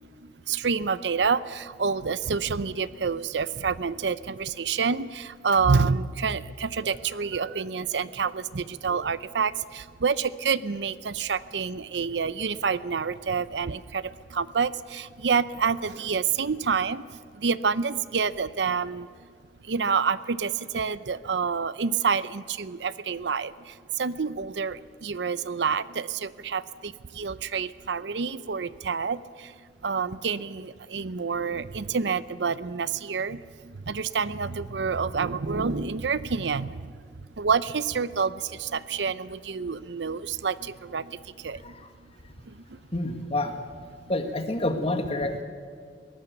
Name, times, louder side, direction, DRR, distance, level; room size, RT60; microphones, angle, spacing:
voice 1, 0.2-19.1 19.6-29.5 29.8-36.9 37.4-41.7 42.4-42.8, right 5 dB, 75° right, 17 dB, 0.6 m, -28 dB
voice 2, 42.9-43.6 44.1-45.4, left 1 dB, 35° left, 6 dB, 1.9 m, -28 dB
22.0 x 18.0 x 6.9 m, 2.1 s
head